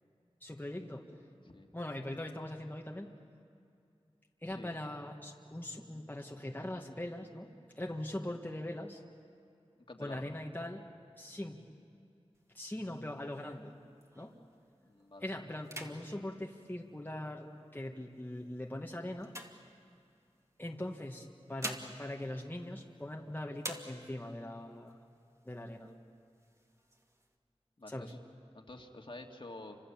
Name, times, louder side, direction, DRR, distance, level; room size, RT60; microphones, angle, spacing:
voice 1, 0.4-1.0 1.7-3.1 4.4-7.5 7.8-9.0 10.0-10.8 11.2-11.6 12.5-13.7 14.1-14.3 15.2-19.3 20.6-25.0 25.4-25.9 27.9-28.1, left 1 dB, 15° left, 0 dB, 1.7 m, -41 dB
voice 2, 9.9-10.3 14.8-15.3 27.8-28.2 28.5-29.8, left 2 dB, 50° left, 2 dB, 2.2 m, -49 dB
sound 1, 12.4-14.5 15.0-15.2 15.6-17.5 18.2-20.3 21.2-23.2 23.6-24.4 24.9-25.0 25.3-25.9 26.4-27.3, right 1 dB, 25° right, 2.4 m, -48 dB
30.0 x 26.0 x 7.2 m, 2.5 s
wide cardioid pair, 60°, 11 cm